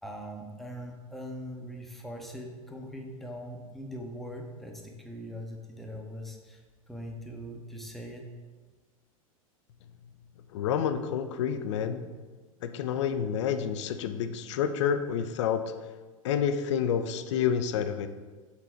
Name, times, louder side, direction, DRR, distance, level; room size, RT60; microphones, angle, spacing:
voice 1, 0.0-6.6 6.9-8.3, equal, ahead, 1 dB, 0.9 m, -41 dB
voice 2, 10.5-12.1 12.6-15.7 16.2-18.1, left 8 dB, 55° left, 10 dB, 0.5 m, -29 dB
7.1 x 3.8 x 4.5 m, 1.4 s
figure-of-eight pair, 90°, 18 cm